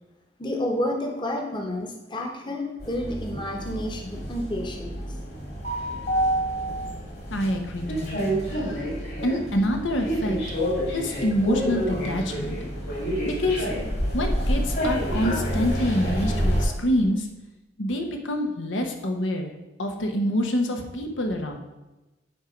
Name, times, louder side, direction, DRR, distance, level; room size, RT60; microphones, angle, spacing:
voice 1, 0.4-5.1, left 1 dB, 25° left, 2 dB, 1.0 m, -30 dB
sound 1, 2.8-16.6, equal, 55° left, 2.5 m, -28 dB
voice 2, 7.3-8.8 9.2-10.4 10.9-12.6 13.2-13.7 14.1-17.3 17.8-19.5 19.8-21.6, left 1 dB, 90° left, 4 dB, 1.1 m, -26 dB
8.8 x 4.6 x 5.1 m, 1.1 s
head